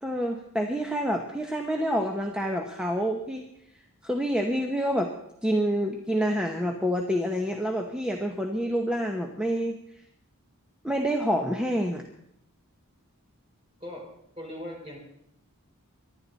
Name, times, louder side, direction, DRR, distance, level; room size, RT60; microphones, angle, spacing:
voice 1, 0.0-3.5 4.0-5.1 5.4-9.8 10.8-12.0, equal, 5° right, 2 dB, 1.0 m, -27 dB
voice 2, 13.8-14.1 14.4-15.0, left 1 dB, 25° right, -2 dB, 5.7 m, -39 dB
24.5 x 11.5 x 4.1 m, 0.76 s
head